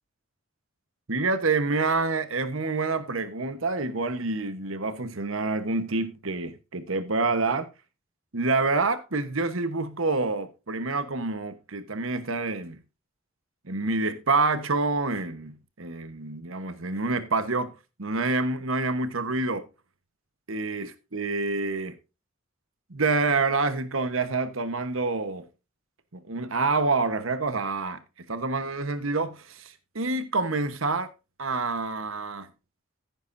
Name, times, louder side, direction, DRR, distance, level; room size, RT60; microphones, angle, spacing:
voice 1, 1.1-7.7 8.3-12.8 13.6-17.7 18.0-19.7 20.5-22.0 22.9-25.5 26.1-28.0 28.3-31.1 31.4-32.5, right 3 dB, 75° right, 1.2 m, -27 dB
14.5 x 9.3 x 2.7 m
head